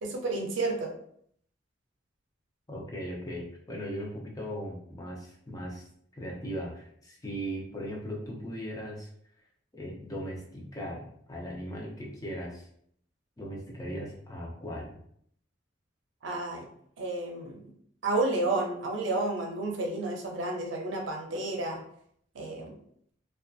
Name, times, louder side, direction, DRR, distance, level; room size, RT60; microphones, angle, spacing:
voice 1, 0.0-0.9 16.2-16.7 17.0-17.7 18.0-21.8 22.3-22.8, right 2 dB, 85° right, 1 dB, 0.6 m, -31 dB
voice 2, 2.7-5.9 6.1-9.1 9.7-12.7 13.4-15.0, equal, 20° left, -2 dB, 0.5 m, -38 dB
2.6 x 2.3 x 2.4 m, 0.66 s
head